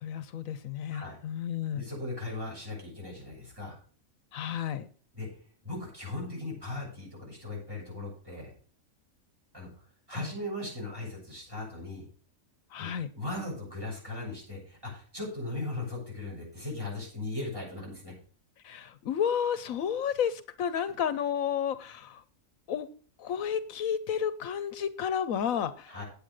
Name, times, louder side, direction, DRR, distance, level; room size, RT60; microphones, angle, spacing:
voice 1, 0.0-1.8 4.3-4.9 10.1-10.3 12.7-13.1 18.6-22.2 22.7-22.9 23.2-26.0, left 8 dB, 80° left, 14 dB, 1.1 m, -31 dB
voice 2, 1.7-3.8 5.1-5.3 5.6-8.5 9.5-9.7 10.1-12.1 12.8-12.9 13.1-18.1 20.7-20.8 25.9-26.0, left 2 dB, 15° right, -4 dB, 7.3 m, -38 dB
9.0 x 8.7 x 6.4 m, 0.42 s
omnidirectional pair, 1.4 m